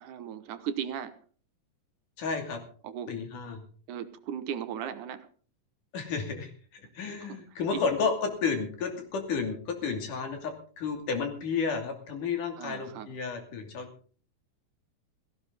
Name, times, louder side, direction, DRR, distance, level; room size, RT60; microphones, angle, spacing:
voice 1, 0.0-1.1 2.8-3.1 3.9-5.3 12.6-13.1, right 9 dB, 70° right, 11 dB, 2.4 m, -36 dB
voice 2, 2.2-2.6 3.1-3.6 5.9-13.9, left 5 dB, 65° left, 4 dB, 4.2 m, -32 dB
16.5 x 16.0 x 3.9 m, 0.42 s
omnidirectional pair, 4.0 m